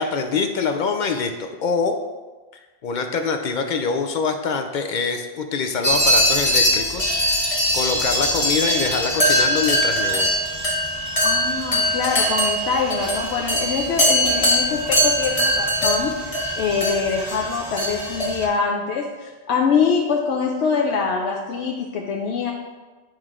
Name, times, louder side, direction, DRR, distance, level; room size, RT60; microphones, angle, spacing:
voice 1, 0.0-2.0 2.8-7.1 7.7-10.3, left 5 dB, 60° left, 5 dB, 0.5 m, -24 dB
sound 1, 5.8-18.5, equal, 35° left, 1.2 m, -21 dB
voice 2, 11.2-22.5, left 5 dB, 80° left, -1 dB, 0.9 m, -24 dB
8.8 x 3.2 x 3.6 m, 1.3 s
omnidirectional pair, 1.1 m